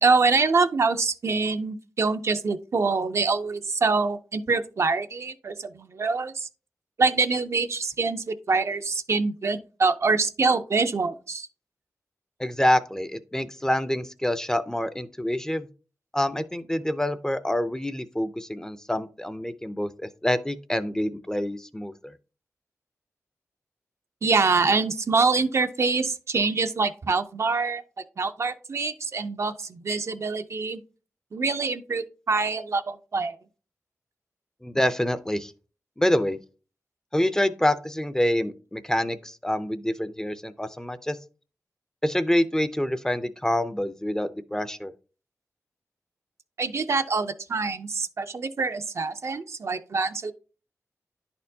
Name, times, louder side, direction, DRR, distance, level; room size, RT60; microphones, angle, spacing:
voice 1, 0.0-6.5 7.0-11.5 24.2-27.8 28.2-30.8 31.3-33.4 46.6-50.3, right 4 dB, 55° right, 8 dB, 0.4 m, -25 dB
voice 2, 12.4-15.7 16.1-22.1 34.6-35.5 36.0-36.4 37.1-41.2 42.0-44.9, left 1 dB, 10° left, 12 dB, 0.4 m, -26 dB
10.5 x 4.3 x 2.7 m, 0.36 s
wide cardioid pair, 100°, 6 cm